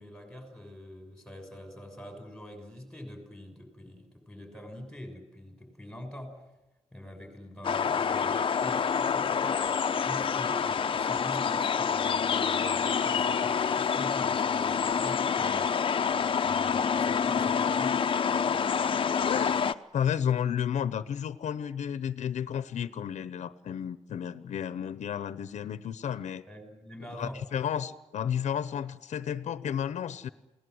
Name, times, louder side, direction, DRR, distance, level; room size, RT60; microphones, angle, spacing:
voice 1, 0.0-6.4 6.9-15.7 16.4-18.1 26.5-27.4, left 1 dB, 5° left, 5 dB, 6.5 m, -44 dB
sound 1, 7.6-19.7, left 6 dB, 45° left, 0.9 m, -27 dB
voice 2, 19.2-26.4 27.1-30.3, left 8 dB, 90° left, 14 dB, 0.9 m, -32 dB
28.5 x 18.5 x 8.0 m, 1.0 s
wide cardioid pair, 125°, 12 cm